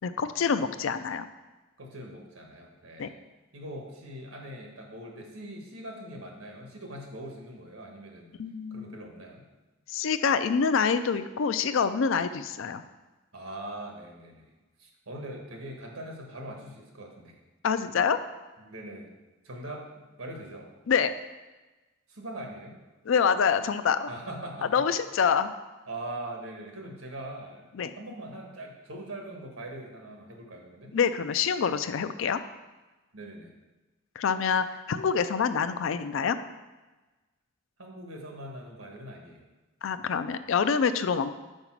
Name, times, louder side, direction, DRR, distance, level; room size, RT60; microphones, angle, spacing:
voice 1, 0.0-1.3 3.0-3.1 8.4-9.0 9.9-12.8 17.6-18.2 20.9-21.1 23.1-24.1 24.7-25.5 27.7-27.9 30.9-32.4 34.2-36.4 39.8-41.3, left 6 dB, 65° left, 11 dB, 0.4 m, -26 dB
voice 2, 1.8-3.2 3.5-8.3 8.7-9.4 13.3-14.5 14.8-17.4 18.6-19.1 19.4-20.7 22.1-22.8 24.1-24.8 25.9-27.6 28.0-30.9 33.1-33.5 37.8-39.5, right 1 dB, 85° right, 1 dB, 1.4 m, -41 dB
5.4 x 4.9 x 6.0 m, 1.2 s
head